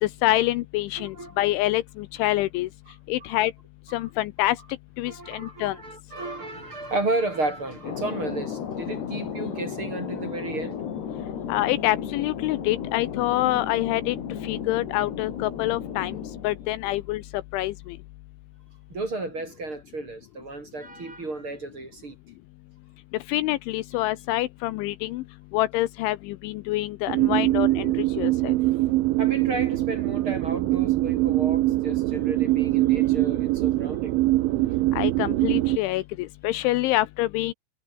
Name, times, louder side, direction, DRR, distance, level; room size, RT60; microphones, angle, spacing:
voice 1, 0.0-2.7 3.1-3.5 3.9-4.6 5.0-5.8 11.5-14.2 14.4-16.1 16.4-17.2 17.5-18.0 23.3-25.2 25.5-28.6 34.9-37.5, left 16 dB, 80° left, 3.0 m, -26 dB
voice 2, 1.0-1.4 4.0-4.1 5.0-10.8 16.9-17.0 18.9-22.2 29.2-34.2, right 2 dB, 30° right, 3.6 m, -33 dB
Thunder, 7.8-17.2, left 8 dB, 60° left, 5.1 m, -34 dB
sound 1, 27.1-35.8, right 18 dB, 80° right, 3.3 m, -23 dB
omnidirectional pair, 5.8 m